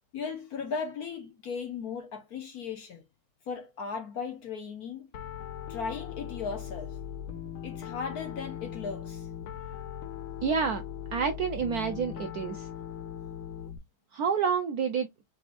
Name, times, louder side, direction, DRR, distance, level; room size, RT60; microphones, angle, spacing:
voice 1, 0.1-3.0 3.5-5.1 5.7-7.0 7.6-9.3, left 5 dB, 60° left, 1.0 m, -37 dB
Piano, 5.1-13.8, left 9 dB, 85° left, 1.6 m, -39 dB
voice 2, 10.4-10.8 11.1-12.7 14.1-15.1, right 6 dB, 75° right, 0.9 m, -28 dB
5.0 x 3.5 x 2.5 m
omnidirectional pair, 2.2 m